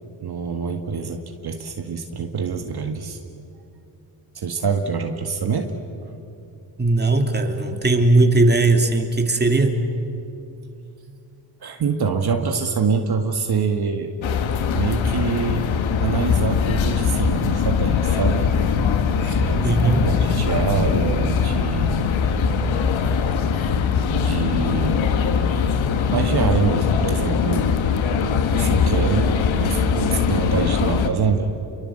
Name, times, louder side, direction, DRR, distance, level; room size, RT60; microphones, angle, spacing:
voice 1, 0.2-3.2 4.3-5.7 11.6-14.1 14.7-15.7 16.0-18.5 19.2-22.1 24.2-25.2 26.1-27.8 28.5-29.3 29.6-31.5, right 5 dB, 55° right, 4 dB, 2.0 m, -25 dB
voice 2, 6.8-9.8 19.6-20.1, right 2 dB, 20° right, 4 dB, 2.8 m, -18 dB
sound 1, 14.2-31.1, left 6 dB, 85° left, 1.8 m, -21 dB
29.5 x 23.5 x 7.9 m, 2.7 s
cardioid pair, 75°, 46 cm